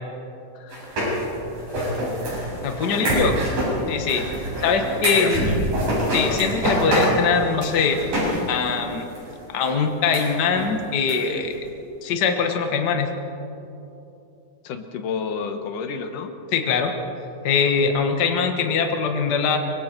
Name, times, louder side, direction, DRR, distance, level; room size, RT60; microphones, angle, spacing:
voice 1, 0.6-0.9 3.0-3.4 4.9-5.7 14.6-16.3, left 6 dB, 85° left, 7 dB, 2.8 m, -31 dB
sound 1, 0.7-8.4 8.6-8.7 9.1-9.2 9.6-9.7 10.1-10.2 10.6-10.7 11.1-11.2 11.4-11.5, equal, 80° right, 8.6 m, -25 dB
voice 2, 2.6-3.3 3.9-4.2 4.6-5.4 6.1-8.0 8.5-9.1 9.5-11.6 12.0-13.1 16.5-16.9 17.4-19.6, left 5 dB, 40° left, 4 dB, 1.6 m, -22 dB
25.5 x 23.0 x 4.6 m, 2.9 s
omnidirectional pair, 3.6 m